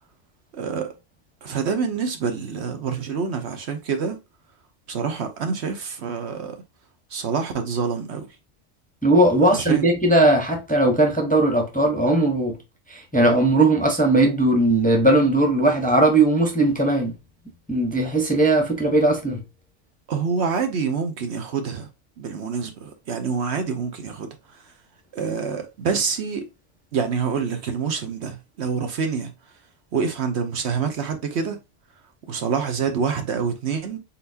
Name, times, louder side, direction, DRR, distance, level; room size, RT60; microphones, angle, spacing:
voice 1, 0.5-0.9 1.4-4.2 4.9-6.6 7.1-8.3 9.5-9.9 20.1-21.9 22.2-24.6 25.1-26.4 26.9-29.3 29.9-31.6 32.3-34.0, right 6 dB, 65° right, 0.9 m, -26 dB
voice 2, 9.0-12.5 12.9-17.1 17.7-19.4, right 2 dB, 10° left, 0.7 m, -18 dB
4.2 x 3.9 x 2.6 m
omnidirectional pair, 1.3 m